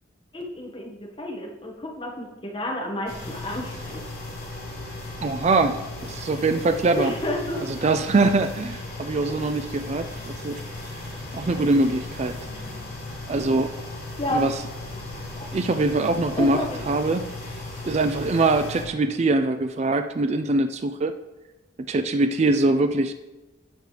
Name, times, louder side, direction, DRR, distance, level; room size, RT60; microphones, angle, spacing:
voice 1, 0.3-4.0 7.0-7.6 9.4-9.5 13.4-13.6 14.2-14.5 16.4-16.8, left 1 dB, 25° left, -1 dB, 1.6 m, -30 dB
sound 1, 3.1-18.8, left 2 dB, 45° left, 3.6 m, -36 dB
voice 2, 5.2-7.1 7.7-10.6 11.3-12.4 13.3-13.7 14.3-14.6 15.5-16.6 16.9-17.3 17.8-21.1 21.9-23.1, right 2 dB, 35° right, 8 dB, 0.3 m, -23 dB
16.0 x 6.4 x 3.3 m, 1.1 s
head